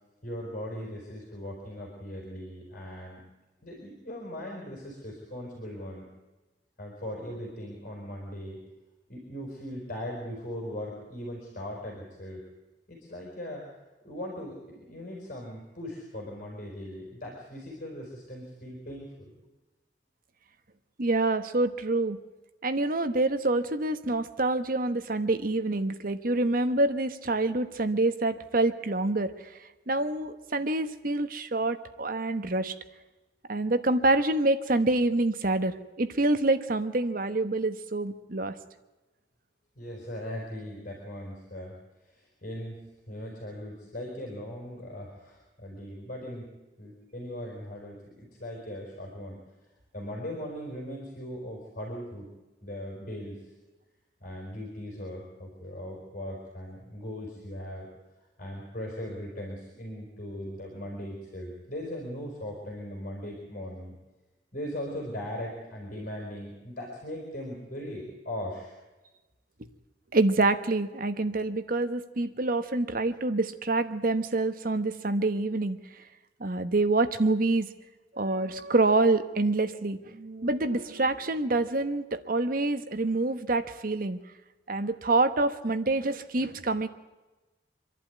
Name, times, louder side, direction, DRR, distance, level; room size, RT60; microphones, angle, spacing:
voice 1, 0.2-3.2 3.6-6.1 6.8-8.6 9.1-12.4 12.9-13.6 14.0-19.3 39.8-41.8 42.0-46.5 46.8-49.4 49.9-52.3 52.6-53.4 54.2-57.9 58.4-64.0 64.5-68.7, equal, 50° left, 0 dB, 5.0 m, -39 dB
voice 2, 21.0-22.2 22.6-29.5 29.9-32.7 33.5-38.6 70.1-75.8 76.4-77.7 78.1-84.2 84.7-86.9, right 2 dB, 55° right, 10 dB, 1.1 m, -26 dB
26.0 x 11.5 x 9.5 m, 1.1 s
head